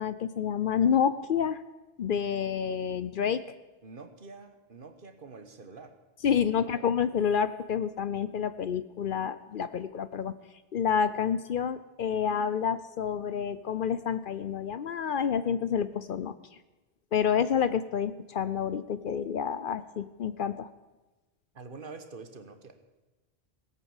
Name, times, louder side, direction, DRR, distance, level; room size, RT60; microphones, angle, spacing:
voice 1, 0.0-1.6 2.0-3.4 6.2-10.4 10.7-16.3 17.1-20.7, left 7 dB, 60° left, 14 dB, 0.7 m, -28 dB
voice 2, 3.8-5.9 6.7-6.9 21.5-22.8, right 4 dB, 55° right, 8 dB, 1.4 m, -46 dB
17.5 x 8.5 x 7.2 m, 1.1 s
omnidirectional pair, 1.1 m